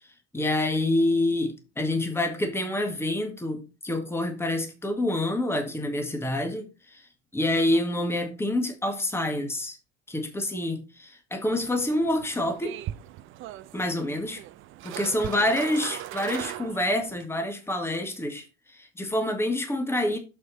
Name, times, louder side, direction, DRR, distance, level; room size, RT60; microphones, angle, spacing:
voice 1, 0.3-7.1 7.3-9.8 10.1-12.8 13.7-14.4 14.8-20.2, left 1 dB, 5° left, 1.9 m, -27 dB
sound 1, 11.5-17.3, right 14 dB, 35° right, 0.6 m, -39 dB
7.1 x 6.2 x 4.1 m
figure-of-eight pair, 75°, 34 cm